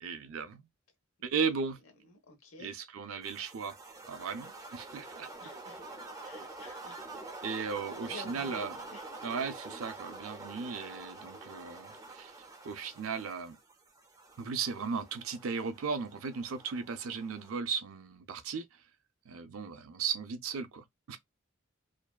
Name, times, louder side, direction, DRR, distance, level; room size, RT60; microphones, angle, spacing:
voice 1, 0.0-0.6 1.2-1.8 2.6-3.8 4.1-5.3 7.4-8.8 9.2-12.3 12.6-13.6 14.4-18.6 19.3-21.2, right 5 dB, 85° right, 0.5 m, -36 dB
voice 2, 2.1-2.7 5.4-5.8 6.1-7.0 7.5-7.7 8.0-9.1 11.2-11.3, left 2 dB, 85° left, 0.9 m, -51 dB
sound 1, 3.2-17.6, right 2 dB, 15° right, 0.4 m, -47 dB
2.6 x 2.2 x 2.3 m
head